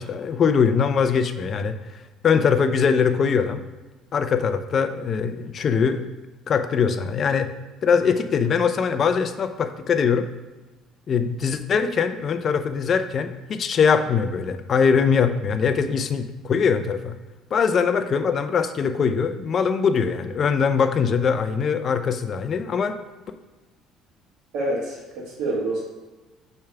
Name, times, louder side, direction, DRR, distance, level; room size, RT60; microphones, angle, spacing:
voice 1, 0.0-1.8 2.2-3.6 4.1-6.1 6.5-7.5 7.8-10.3 11.1-17.2 17.5-23.0, left 6 dB, 30° left, 8 dB, 0.4 m, -22 dB
voice 2, 24.5-25.8, right 1 dB, 70° right, -6 dB, 1.4 m, -27 dB
6.8 x 3.3 x 5.8 m, 1.2 s
cardioid pair, 175°, 0 cm